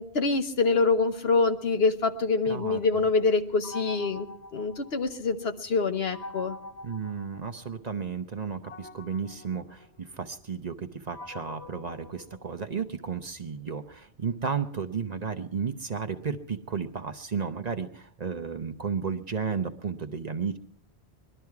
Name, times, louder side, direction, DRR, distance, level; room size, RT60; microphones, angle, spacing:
voice 1, 0.0-4.3 4.5-6.6, left 4 dB, 70° left, 7 dB, 1.3 m, -25 dB
voice 2, 2.4-3.1 6.8-20.6, right 6 dB, 45° right, 8 dB, 0.8 m, -33 dB
sound 1, 3.6-5.4 6.1-7.9 8.6-12.9, left 2 dB, 85° left, 1.7 m, -45 dB
21.0 x 12.5 x 4.7 m, 0.65 s
omnidirectional pair, 1.1 m